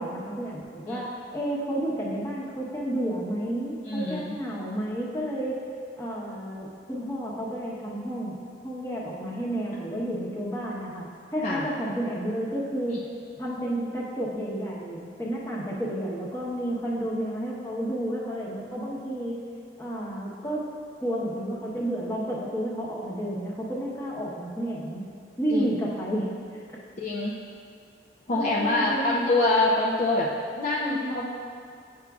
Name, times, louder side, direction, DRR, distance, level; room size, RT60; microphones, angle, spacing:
voice 1, 0.0-5.6 6.0-8.4 8.6-13.0 13.4-19.4 19.8-20.7 21.0-25.1 25.4-26.4 28.3-29.2 30.8-31.2, right 1 dB, 15° left, -5 dB, 1.0 m, -31 dB
voice 2, 3.9-4.4 10.0-10.2 11.4-11.7 12.9-13.0 25.5-25.7 27.0-27.4 28.3-30.3 30.6-31.3, left 2 dB, 40° left, -4 dB, 0.5 m, -25 dB
9.5 x 6.0 x 2.4 m, 2.3 s
head